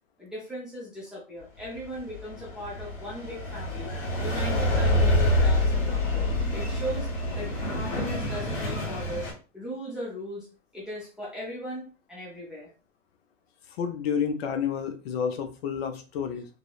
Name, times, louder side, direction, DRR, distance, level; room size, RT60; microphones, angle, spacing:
voice 1, 0.2-3.9 4.2-7.1 7.3-10.5 10.7-12.7, equal, ahead, -6 dB, 0.4 m, -38 dB
sound 1, 1.8-9.3, left 1 dB, 70° left, 1.4 m, -26 dB
voice 2, 13.8-16.5, left 7 dB, 50° left, 7 dB, 0.5 m, -30 dB
2.8 x 2.0 x 2.3 m, 0.33 s
hypercardioid pair, 115°, 39 cm